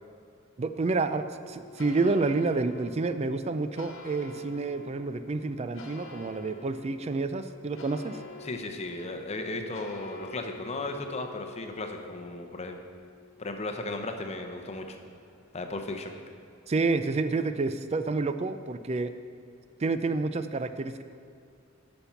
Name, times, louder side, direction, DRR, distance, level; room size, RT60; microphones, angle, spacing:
voice 1, 0.6-8.2 16.7-19.1 19.8-21.0, right 3 dB, 30° right, 10 dB, 0.4 m, -29 dB
sound 1, 0.9-18.5, left 3 dB, 90° left, 1.2 m, -49 dB
voice 2, 8.4-12.8 13.4-15.0 15.5-16.1, left 2 dB, 30° left, 5 dB, 0.7 m, -35 dB
11.5 x 5.3 x 5.7 m, 2.5 s
head